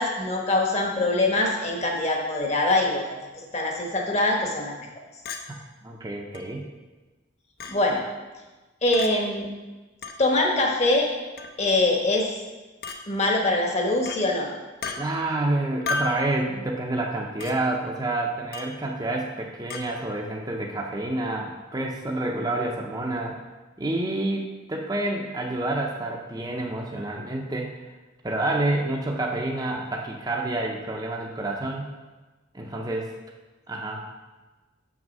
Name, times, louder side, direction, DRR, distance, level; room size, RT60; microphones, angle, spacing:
voice 1, 0.0-4.7 7.7-8.0 8.8-9.5 10.2-11.1 11.6-12.4 13.1-14.5, left 2 dB, 35° left, 0 dB, 1.3 m, -23 dB
Chink clink, 5.3-5.4 6.3-6.4 7.6-7.8 8.9-9.1 10.0-10.2 11.4-11.6 12.8-13.0 14.1-14.2 14.8-15.0 15.9-16.2 17.4-17.5 18.5-18.8 19.7-19.9, left 4 dB, 50° left, 0.7 m, -32 dB
voice 2, 5.8-6.6 14.9-23.4 23.8-27.9 28.2-31.9 32.5-33.1 33.7-34.1, right 2 dB, 20° right, -1 dB, 0.6 m, -28 dB
6.6 x 6.1 x 5.4 m, 1.2 s
head